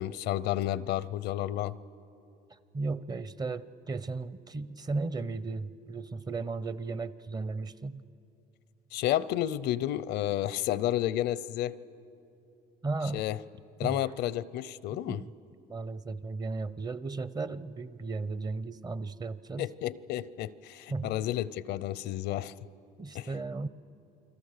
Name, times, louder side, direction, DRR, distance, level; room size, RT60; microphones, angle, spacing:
voice 1, 0.0-1.7 8.9-11.8 13.1-13.4 13.8-15.2 19.6-22.5 23.1-23.3, left 13 dB, 80° left, 19 dB, 0.6 m, -31 dB
voice 2, 2.5-8.0 12.8-13.2 13.8-14.1 14.9-15.3 15.7-19.7 20.9-21.2 23.0-23.7, right 3 dB, 25° right, 16 dB, 0.7 m, -35 dB
29.0 x 22.0 x 6.6 m, 2.8 s
cardioid pair, 110°, 17 cm